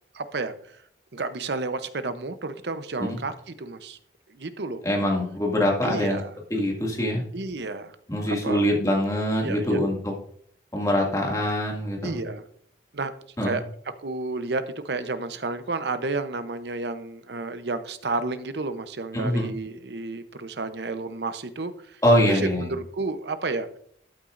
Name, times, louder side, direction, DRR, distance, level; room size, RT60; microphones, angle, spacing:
voice 1, 0.1-0.5 1.1-4.0 4.3-4.8 5.8-6.3 7.3-7.9 8.3-8.6 9.4-9.8 12.0-12.4 12.9-13.1 13.4-13.6 14.0-22.0 22.3-23.7, right 3 dB, 65° right, 11 dB, 0.8 m, -31 dB
voice 2, 4.8-6.2 6.5-7.2 8.1-10.1 10.7-12.2 13.4-13.6 19.1-19.5 22.0-22.7, left 1 dB, 20° left, -2 dB, 2.2 m, -24 dB
12.5 x 8.8 x 2.6 m, 0.64 s
head